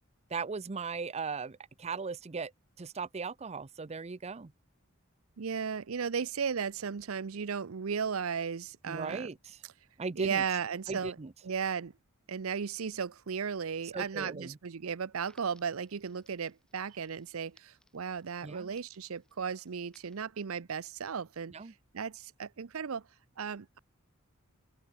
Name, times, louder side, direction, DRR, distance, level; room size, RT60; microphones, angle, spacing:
voice 1, 0.3-2.5 2.8-4.5 8.9-9.6 10.0-10.4 10.9-11.3 13.9-14.6 18.4-18.8 21.5-21.7, right 4 dB, 30° right, 0.5 m, -38 dB
voice 2, 5.4-9.3 10.2-11.2 11.4-11.9 12.3-21.5 21.9-23.0 23.4-23.8, right 6 dB, 80° right, 0.6 m, -35 dB
Crackle, 15.1-20.2, left 1 dB, 5° left, 3.6 m, -68 dB
open air
head